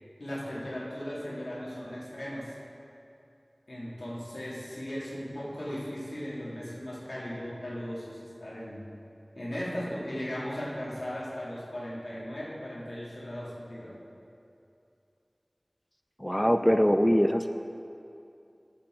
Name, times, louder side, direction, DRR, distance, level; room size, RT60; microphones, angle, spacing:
voice 1, 0.2-2.5 3.7-8.8 9.3-13.9, equal, 85° left, -7 dB, 2.3 m, -37 dB
voice 2, 16.2-17.5, equal, 5° left, 7 dB, 0.4 m, -23 dB
14.0 x 7.2 x 3.8 m, 2.6 s
wide cardioid pair, 45°, 0 cm